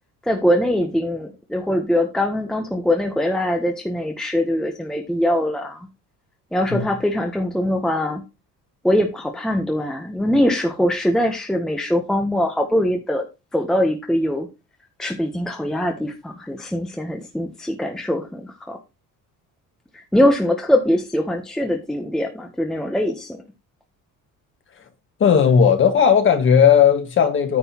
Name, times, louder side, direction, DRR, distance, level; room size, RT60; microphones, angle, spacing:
voice 1, 0.2-5.9 6.5-8.2 8.8-13.2 13.5-14.5 15.0-18.8 19.9-23.4, left 1 dB, ahead, 0.7 m, -22 dB
voice 2, 25.2-27.6, left 7 dB, 35° left, 1.4 m, -15 dB
9.5 x 7.7 x 2.8 m
cardioid pair, 175°, 33 cm